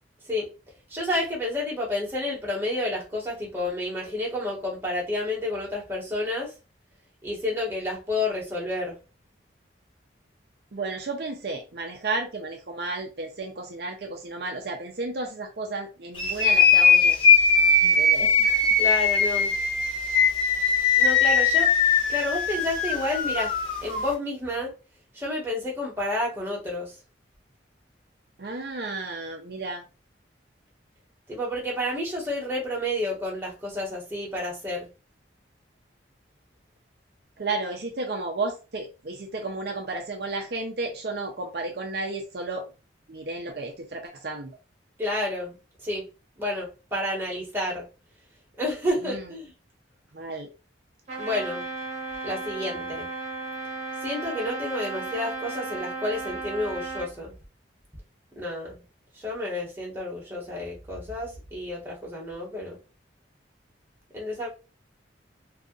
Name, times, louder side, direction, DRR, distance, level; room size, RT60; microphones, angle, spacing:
voice 1, 0.9-6.5 7.2-9.0 18.8-19.6 21.0-21.7 22.1-23.5 23.8-24.7 25.1-26.9 31.3-34.9 45.0-46.0 46.4-47.8 48.6-49.5 51.2-51.6 52.2-53.1 54.0-57.3 58.3-58.8 59.1-62.8 64.1-64.5, left 1 dB, 10° right, 1.2 m, -30 dB
voice 2, 10.7-17.2 17.8-18.7 28.4-29.8 37.4-42.7 43.1-44.5 49.0-49.3 50.1-50.5, right 3 dB, 55° right, 0.5 m, -33 dB
sound 1, 16.1-24.1, left 4 dB, 25° left, 1.1 m, -20 dB
Trumpet, 51.1-57.1, right 3 dB, 35° right, 1.1 m, -34 dB
2.8 x 2.5 x 3.7 m
head